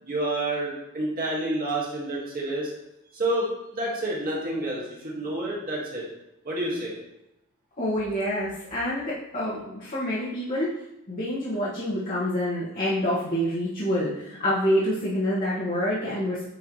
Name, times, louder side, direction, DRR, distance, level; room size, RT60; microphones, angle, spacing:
voice 1, 0.0-2.7 3.1-6.0 6.4-7.0, right 1 dB, 45° right, -4 dB, 1.7 m, -29 dB
voice 2, 7.8-10.7 11.1-16.5, equal, 40° left, -9 dB, 1.5 m, -27 dB
9.4 x 4.6 x 3.2 m, 0.88 s
head